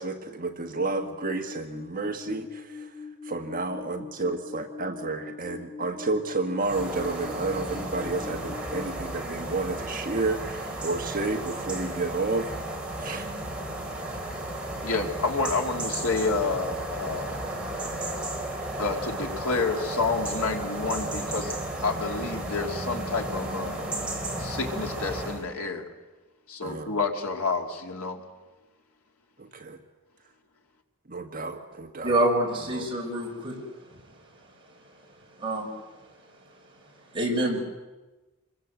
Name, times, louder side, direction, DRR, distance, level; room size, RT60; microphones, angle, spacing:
voice 1, 0.0-13.3 17.5-17.7 21.4-21.5 23.9-24.2 26.6-26.9 29.4-29.8 31.1-32.2 32.5-32.9, right 3 dB, 40° right, 4 dB, 1.5 m, -31 dB
sound 1, 0.7-8.9, left 5 dB, 40° left, 6.1 m, -42 dB
sound 2, 6.6-25.4, right 1 dB, 5° right, 3.8 m, -34 dB
voice 2, 14.8-17.3 18.8-21.6 21.8-23.9 24.4-25.9 26.5-28.2, left 4 dB, 85° left, 2 dB, 2.9 m, -29 dB
voice 3, 32.0-33.6 35.4-35.7 37.1-37.6, right 1 dB, 25° right, -2 dB, 6.1 m, -26 dB
27.0 x 22.5 x 8.0 m, 1.2 s
head